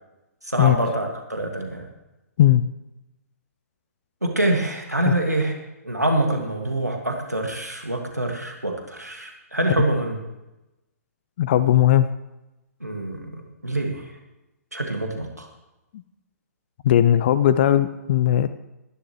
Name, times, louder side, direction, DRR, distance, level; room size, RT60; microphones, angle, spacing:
voice 1, 0.4-1.9 4.2-5.5 5.8-10.2 12.8-14.1 14.7-15.5, right 1 dB, 85° right, 2 dB, 2.1 m, -25 dB
voice 2, 11.4-12.1 16.8-18.5, left 11 dB, 40° left, 14 dB, 0.5 m, -17 dB
20.5 x 11.5 x 3.2 m, 0.96 s
figure-of-eight pair, 120°, 9 cm